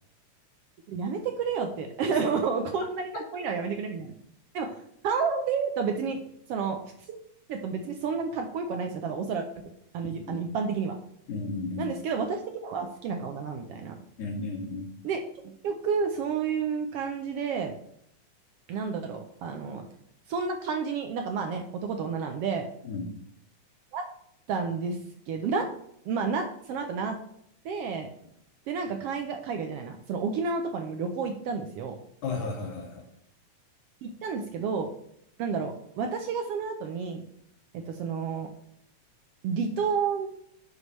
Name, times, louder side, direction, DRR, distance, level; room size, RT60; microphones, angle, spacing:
voice 1, 0.9-4.1 4.5-4.8 5.0-6.2 6.5-6.8 7.1-7.2 7.5-9.5 9.9-11.0 11.8-14.0 15.0-17.7 18.7-19.9 20.3-22.7 23.9-24.0 24.5-25.0 25.3-25.6 26.0-27.2 27.6-28.1 28.7-32.0 34.0-34.9 35.4-37.2 37.7-38.5 39.4-40.3, right 5 dB, 75° right, 5 dB, 1.4 m, -30 dB
voice 2, 11.3-11.9 14.2-14.9 22.8-23.1 32.2-33.0, left 3 dB, 90° left, -1 dB, 3.5 m, -33 dB
9.7 x 6.5 x 3.2 m, 0.73 s
omnidirectional pair, 3.3 m